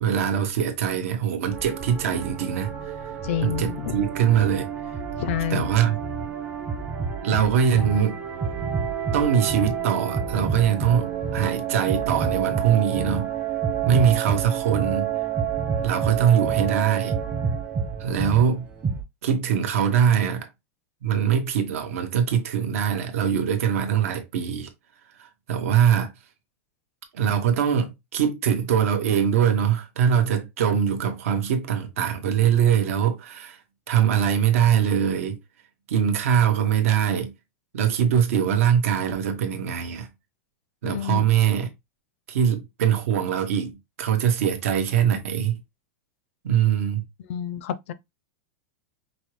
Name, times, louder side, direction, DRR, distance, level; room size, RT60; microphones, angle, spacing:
voice 1, 0.0-2.7 3.4-4.7 5.5-6.0 7.2-8.2 9.1-13.3 13.9-15.1 15.8-17.1 18.0-18.6 19.2-20.5 21.0-24.7 25.2-26.1 27.1-33.6 33.9-35.4 35.9-37.3 37.7-40.1 40.8-41.7 42.3-45.6 46.4-47.0, right 8 dB, 75° right, 1.1 m, -22 dB
sound 1, 1.5-19.0, right 7 dB, 20° right, 0.8 m, -29 dB
voice 2, 3.2-4.0 5.2-5.7 40.8-41.2 47.3-47.9, left 10 dB, 60° left, 0.5 m, -28 dB
5.3 x 2.1 x 3.1 m
supercardioid pair, 165°, 8 cm